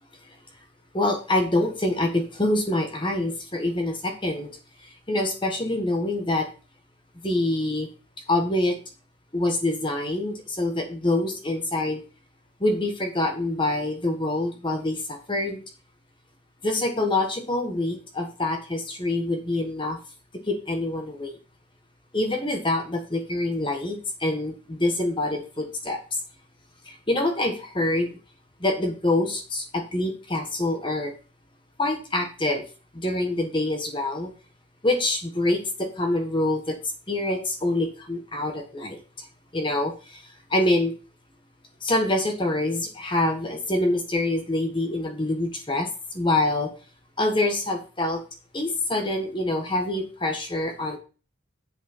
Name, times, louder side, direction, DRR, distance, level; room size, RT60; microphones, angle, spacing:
voice 1, 0.9-4.5 5.1-6.5 7.2-7.9 8.3-8.8 9.3-12.0 12.6-15.6 16.6-20.0 20.5-21.3 22.1-26.0 26.9-28.2 28.6-31.1 31.8-32.6 32.9-34.3 34.8-36.8 37.1-39.0 39.5-40.2 40.5-40.9 41.8-45.9 46.1-46.7 47.2-48.2 48.5-51.0, left 2 dB, 25° left, 3 dB, 1.3 m, -25 dB
8.1 x 6.3 x 4.3 m, 0.34 s
head